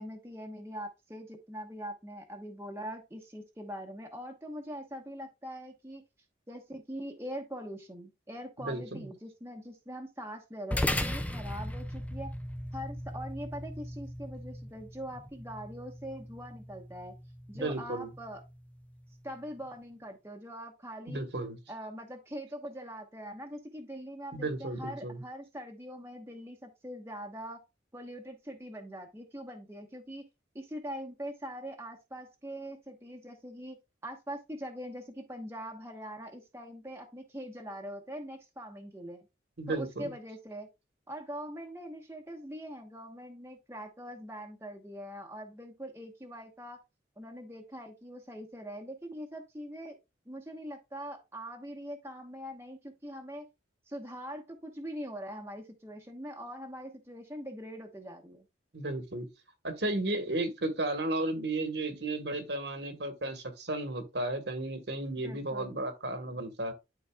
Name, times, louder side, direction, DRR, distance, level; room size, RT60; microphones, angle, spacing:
voice 1, 0.0-6.0 6.5-12.3 12.7-17.1 17.5-18.4 19.2-21.2 21.7-27.6 27.9-30.2 30.5-33.8 34.0-39.3 39.7-40.7 41.1-46.8 47.2-50.0 50.3-53.5 53.9-58.5 65.2-65.8, equal, 15° right, 1.0 m, -42 dB
voice 2, 8.6-9.0 17.5-18.1 21.1-21.6 24.3-25.2 39.6-40.1 58.7-59.3 59.6-66.7, right 2 dB, 65° right, 1.3 m, -34 dB
sound 1, 10.7-19.4, left 1 dB, 10° left, 0.4 m, -38 dB
11.5 x 4.0 x 2.3 m
head